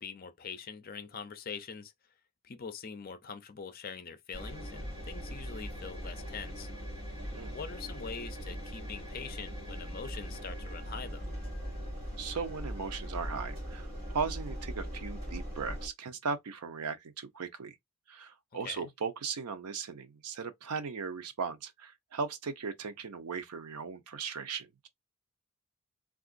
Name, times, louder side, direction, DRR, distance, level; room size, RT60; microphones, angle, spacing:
voice 1, 0.0-1.9 2.4-6.7 7.5-11.2 18.6-18.9, left 6 dB, 40° left, 0.5 m, -43 dB
Engine, 4.3-15.9, equal, 25° right, 2.2 m, -40 dB
voice 2, 12.2-17.8 18.1-24.9, right 5 dB, 90° right, 0.6 m, -38 dB
3.6 x 2.4 x 2.4 m
head